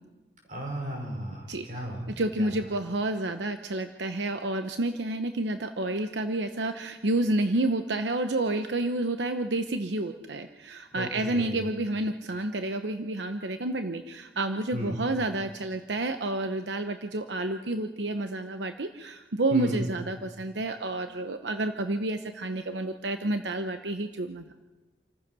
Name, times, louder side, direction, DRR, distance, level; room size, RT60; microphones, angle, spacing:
voice 1, 0.5-2.1 2.4-2.5 10.9-11.6 14.7-14.9 19.5-19.8, right 1 dB, 45° right, 0 dB, 5.9 m, -35 dB
voice 2, 1.5-1.8 2.2-24.5, right 2 dB, 85° right, 8 dB, 0.9 m, -30 dB
28.0 x 15.0 x 6.2 m, 1.2 s
head